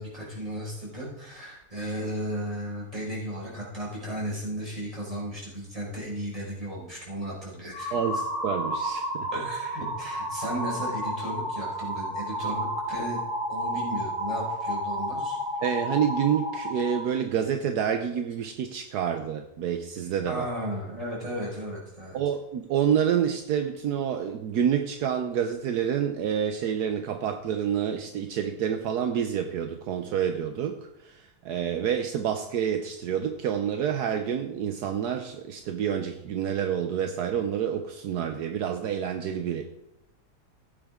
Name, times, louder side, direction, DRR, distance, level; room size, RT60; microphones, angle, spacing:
voice 1, 0.0-8.2 9.3-13.2 13.5-15.4 20.3-22.2, equal, 20° right, -6 dB, 5.3 m, -35 dB
sound 1, 7.7-17.0, equal, 30° left, 4.0 m, -31 dB
voice 2, 8.4-9.3 15.6-20.5 22.1-39.6, right 8 dB, 75° right, 6 dB, 1.3 m, -28 dB
16.0 x 8.9 x 3.7 m, 0.86 s
omnidirectional pair, 1.7 m